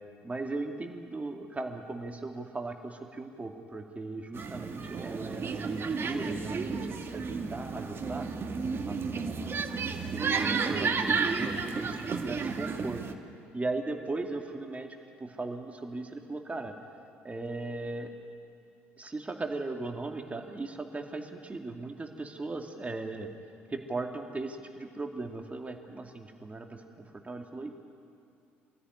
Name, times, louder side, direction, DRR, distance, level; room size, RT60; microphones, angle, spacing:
voice 1, 0.2-8.3 8.9-9.6 10.3-13.0 13.5-16.7 17.2-18.2 19.0-23.3 23.7-26.8 27.1-27.8, right 3 dB, 20° right, 3 dB, 2.5 m, -38 dB
sound 1, 4.3-13.1, right 5 dB, 35° right, 1.9 m, -32 dB
24.5 x 16.0 x 9.7 m, 2.5 s
figure-of-eight pair, 55°, 7 cm